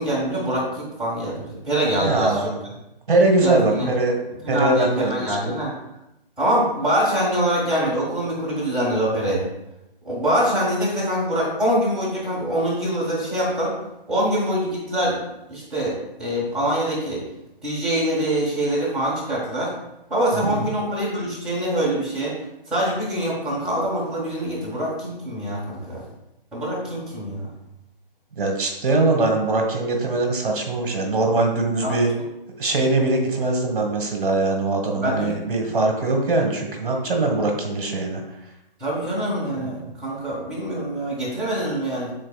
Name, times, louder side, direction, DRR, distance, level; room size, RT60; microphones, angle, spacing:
voice 1, 0.0-2.4 3.4-3.9 4.4-5.7 6.4-9.5 10.0-13.8 14.1-15.2 15.5-17.2 17.6-19.7 20.1-22.4 22.7-26.0 26.5-27.5 31.8-31.9 34.9-35.4 38.8-42.1, right 1 dB, ahead, -10 dB, 1.5 m, -24 dB
voice 2, 1.9-2.6 3.1-4.2 4.5-5.4 20.3-20.7 28.4-32.1 32.6-38.2 39.6-39.7, right 2 dB, 60° right, 2 dB, 1.4 m, -22 dB
10.5 x 4.0 x 2.4 m, 0.88 s
hypercardioid pair, 160°, 29 cm